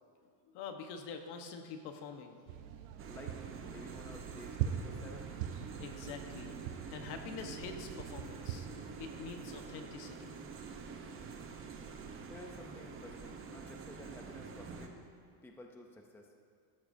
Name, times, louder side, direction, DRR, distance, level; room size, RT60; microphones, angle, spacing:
voice 1, 0.5-2.5 5.8-6.6 6.9-8.7 9.0-10.4, left 5 dB, 65° left, 5 dB, 1.2 m, -46 dB
sound 1, 2.5-8.6, right 10 dB, 90° right, 1.0 m, -42 dB
sound 2, 3.0-14.9, right 5 dB, 30° right, 0.9 m, -47 dB
voice 2, 3.1-5.3 12.3-15.0 15.4-16.3, left 1 dB, 5° left, 2 dB, 0.5 m, -52 dB
15.0 x 13.0 x 2.7 m, 2.2 s
cardioid pair, 155°, 44 cm